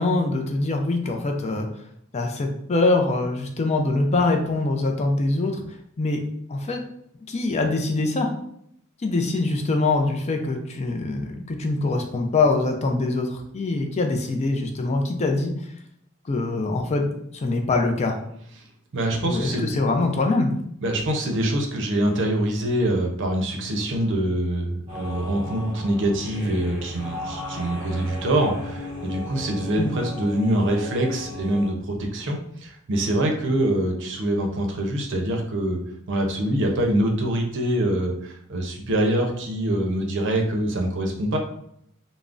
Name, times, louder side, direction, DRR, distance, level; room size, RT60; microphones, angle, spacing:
voice 1, 0.0-1.7 2.1-5.6 6.0-6.2 6.5-6.8 7.3-8.3 9.0-15.5 16.3-18.2 19.2-20.6 29.8-29.9, left 2 dB, 30° left, 3 dB, 0.4 m, -23 dB
voice 2, 18.9-19.7 20.8-35.8 36.1-41.4, right 1 dB, 60° right, 2 dB, 0.6 m, -24 dB
sound 1, 24.9-31.7, left 1 dB, 20° right, 1.1 m, -36 dB
3.5 x 2.0 x 2.4 m, 0.71 s
head